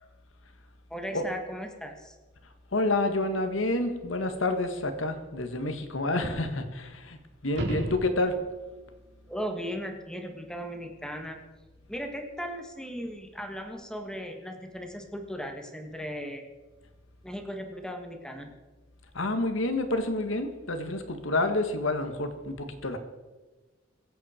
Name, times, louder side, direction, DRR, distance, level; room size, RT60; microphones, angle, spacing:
voice 1, 0.9-2.2 9.3-11.4 11.9-16.5 17.2-18.5, equal, 5° left, 4 dB, 1.7 m, -37 dB
voice 2, 2.7-7.2 7.4-8.3 19.1-23.0, left 2 dB, 75° left, 8 dB, 1.7 m, -28 dB
sound 1, 7.4-8.7 13.6-13.7, right 1 dB, 70° right, 3.7 m, -33 dB
23.5 x 8.4 x 4.4 m, 1.3 s
head